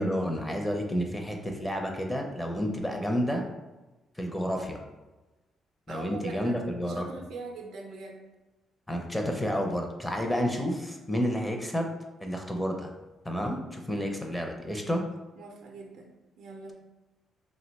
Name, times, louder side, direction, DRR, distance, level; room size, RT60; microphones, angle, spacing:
voice 1, 0.0-3.4 4.2-4.8 5.9-7.1 8.9-11.9 12.2-12.9 13.2-15.0, equal, 10° left, 2 dB, 0.5 m, -30 dB
voice 2, 5.9-6.6 6.9-8.2 15.4-16.7, right 4 dB, 80° right, 1 dB, 0.4 m, -42 dB
2.7 x 2.1 x 4.0 m, 1.1 s
cardioid pair, 90°, 0 cm